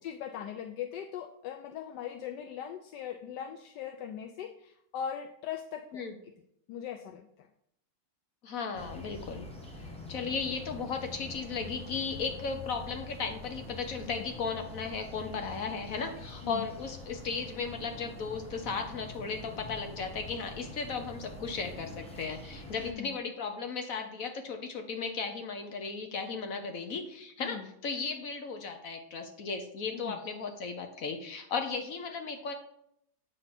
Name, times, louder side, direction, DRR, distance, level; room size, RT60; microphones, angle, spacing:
voice 1, 0.0-6.0 6.7-7.5 14.1-14.3 16.4-16.7 22.8-23.2 27.4-27.7 29.9-30.2, left 9 dB, 80° left, 6 dB, 1.2 m, -40 dB
voice 2, 8.4-9.5 9.8-32.5, left 5 dB, 60° left, 5 dB, 1.1 m, -36 dB
sound 1, 8.7-22.9, left 2 dB, 5° left, 0.8 m, -45 dB
8.1 x 3.9 x 5.9 m, 0.73 s
omnidirectional pair, 1.8 m